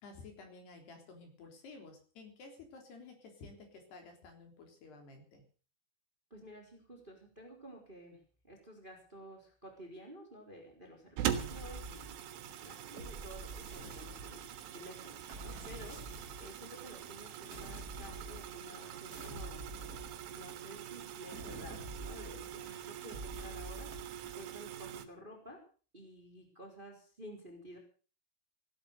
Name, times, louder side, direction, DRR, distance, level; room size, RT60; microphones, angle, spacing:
voice 1, 0.0-5.4, left 3 dB, 55° left, 4 dB, 5.5 m, -53 dB
voice 2, 6.3-12.3 12.6-14.5 14.7-20.0 20.3-25.6 25.9-27.8, equal, 10° right, 2 dB, 3.4 m, -52 dB
sound 1, 11.2-25.1, right 10 dB, 75° right, 3.8 m, -43 dB
sound 2, 11.3-12.4 13.0-14.6 15.3-16.6 17.5-18.8 19.1-20.7 21.3-22.7 23.1-24.4, right 2 dB, 40° right, 1.4 m, -47 dB
17.5 x 12.5 x 6.7 m, 0.41 s
omnidirectional pair, 5.7 m